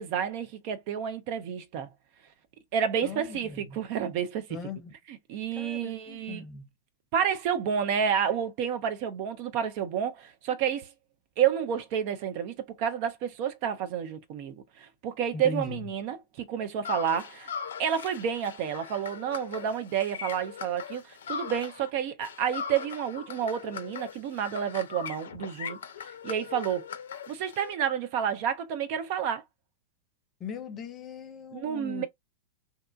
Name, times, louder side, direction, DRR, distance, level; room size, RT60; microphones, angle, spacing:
voice 1, 0.0-1.9 2.7-4.5 5.3-6.4 7.1-10.9 11.4-17.5 17.8-25.8 26.2-26.9 27.3-29.4 31.5-32.1, right 8 dB, 45° right, 0.5 m, -30 dB
voice 2, 3.0-3.8 4.5-4.9 5.5-6.7 15.3-15.9 30.4-32.1, left 4 dB, 30° left, 0.7 m, -39 dB
sound 1, 16.8-21.9 22.2-27.7, left 7 dB, 65° left, 0.5 m, -40 dB
2.9 x 2.2 x 2.3 m
figure-of-eight pair, 90°, 0 cm